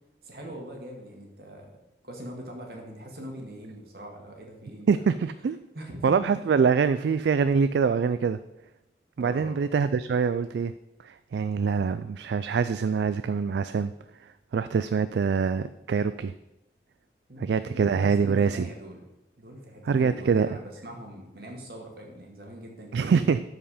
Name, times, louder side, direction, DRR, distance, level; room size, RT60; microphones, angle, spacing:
voice 1, 0.2-1.8 2.0-5.2 5.7-6.1 9.2-9.6 15.1-15.2 17.3-19.0 19.4-23.3, equal, 60° right, 1 dB, 1.9 m, -42 dB
voice 2, 4.9-5.6 6.0-8.4 9.2-10.7 11.0-13.9 14.5-16.3 17.4-18.7 19.9-20.5 22.9-23.4, right 5 dB, 75° right, 13 dB, 0.3 m, -24 dB
13.0 x 4.9 x 5.0 m, 0.94 s
head